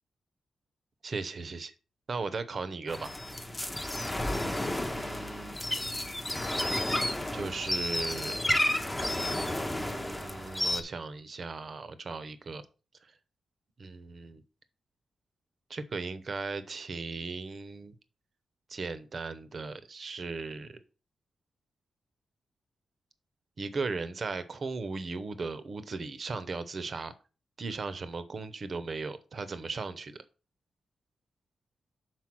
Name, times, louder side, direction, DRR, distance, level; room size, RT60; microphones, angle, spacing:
voice 1, 1.0-1.7 2.1-3.1 4.9-5.6 6.9-8.4 9.8-12.6 13.8-14.4 15.7-17.9 18.7-20.8 23.6-27.1 27.6-30.2, right 4 dB, 40° right, 13 dB, 0.7 m, -37 dB
sound 1, 2.9-10.8, left 1 dB, 10° left, 0.7 m, -31 dB
5.9 x 4.6 x 6.1 m, 0.35 s
wide cardioid pair, 170°, 0 cm